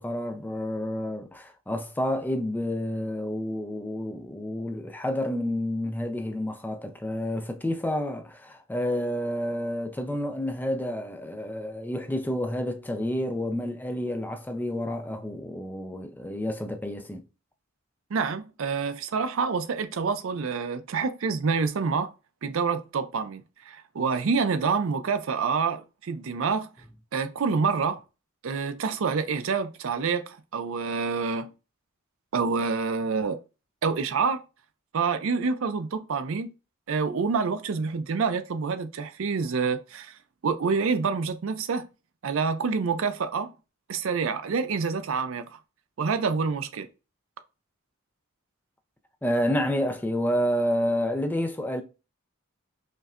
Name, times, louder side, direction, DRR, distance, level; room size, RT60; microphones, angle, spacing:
voice 1, 0.0-17.2 49.2-51.8, left 1 dB, 10° left, 0.3 m, -29 dB
voice 2, 18.1-22.1 22.4-26.7 27.1-28.0 28.4-31.5 32.3-33.4 33.8-34.4 34.9-36.5 36.9-40.2 40.4-41.9 42.2-43.5 43.9-45.6 46.0-46.9, right 5 dB, 65° right, 0.4 m, -27 dB
5.3 x 2.1 x 2.4 m
head